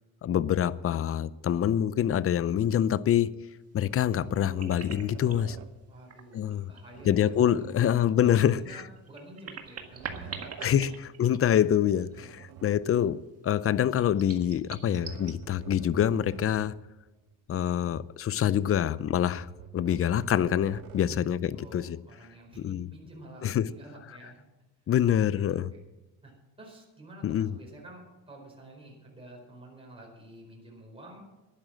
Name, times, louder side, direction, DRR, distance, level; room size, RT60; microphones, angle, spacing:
voice 1, 0.2-3.4 3.7-5.6 6.3-6.7 7.1-8.6 10.6-16.7 17.5-19.5 19.7-22.0 22.6-22.9 23.4-23.7 24.9-25.7 27.2-27.5, left 10 dB, 35° left, 0.5 m, -26 dB
sound 1, 3.7-5.8 6.9-9.0 9.6-10.9 11.7-13.2 14.4-16.9 17.3-17.4 18.7-21.5, right 7 dB, 65° right, 1.3 m, -47 dB
sound 2, 4.2-5.5 6.0-7.0 7.3-7.4 8.9-11.8 12.1-12.2 14.0-15.3, right 6 dB, 40° right, 1.7 m, -43 dB
voice 2, 5.9-11.0 12.1-12.3 21.0-24.4 25.1-25.8 26.2-26.3 26.6-31.2, right 1 dB, 15° right, 4.6 m, -49 dB
11.5 x 10.0 x 7.4 m
cardioid pair, 115°, 38 cm